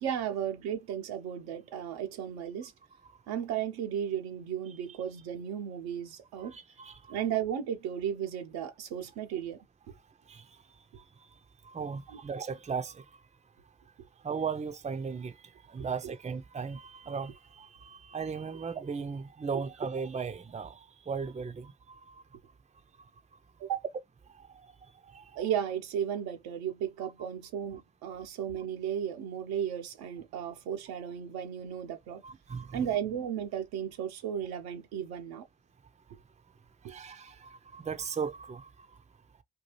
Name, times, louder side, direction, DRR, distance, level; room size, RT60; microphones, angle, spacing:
voice 1, 0.0-2.7 3.3-6.5 7.1-9.6 9.9-10.0 12.1-12.2 15.8-16.1 19.5-19.6 23.6-23.8 25.3-32.2 32.7-35.4 36.8-36.9, right 9 dB, 75° right, 0.8 m, -35 dB
voice 2, 6.4-7.2 10.3-10.4 11.6-13.0 14.2-15.3 15.7-22.2 24.4-24.5 25.1-25.2 28.1-28.3 32.2-32.9 36.9-38.9, right 5 dB, 20° right, 0.6 m, -37 dB
2.7 x 2.3 x 3.2 m
hypercardioid pair, 50°, 37 cm